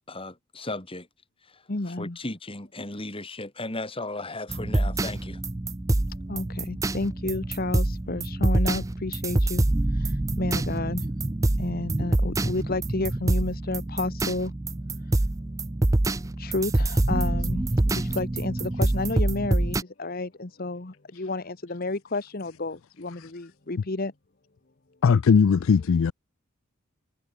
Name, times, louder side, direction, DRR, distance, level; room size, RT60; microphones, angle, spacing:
voice 1, 0.1-1.1 1.4-1.6 2.0-5.4, left 2 dB, 25° left, 3.9 m, -36 dB
voice 2, 1.7-2.2 6.1-11.1 11.6-14.5 15.0-15.3 16.4-24.1, left 2 dB, 45° left, 1.2 m, -31 dB
sound 1, 4.5-19.8, right 2 dB, 15° right, 0.4 m, -26 dB
voice 3, 25.0-26.1, left 6 dB, 70° left, 0.4 m, -19 dB
head